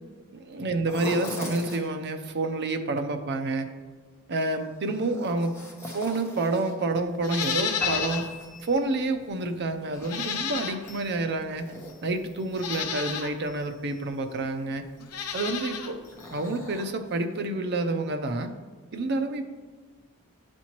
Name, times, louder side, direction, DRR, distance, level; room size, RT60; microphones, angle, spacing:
voice 1, 0.3-3.7 4.3-5.6 5.9-8.2 8.6-11.7 12.0-14.8 15.3-16.0 16.3-18.5 18.9-19.4, right 2 dB, 50° right, 7 dB, 0.5 m, -28 dB
sound 1, 0.8-1.9 4.5-6.9 8.0-9.0 9.5-11.2 11.5-12.6 16.1-17.4 17.8-17.9 18.4-18.5, left 2 dB, 10° left, 1.0 m, -41 dB
Livestock farm animals working animals, 7.2-8.3 8.7-8.8 10.0-11.1 11.9-12.0 12.5-13.3 15.0-15.9 16.2-16.3, left 7 dB, 90° left, 0.7 m, -32 dB
sound 2, 7.8-9.3, left 6 dB, 35° left, 1.9 m, -34 dB
11.0 x 4.3 x 3.0 m, 1.4 s
head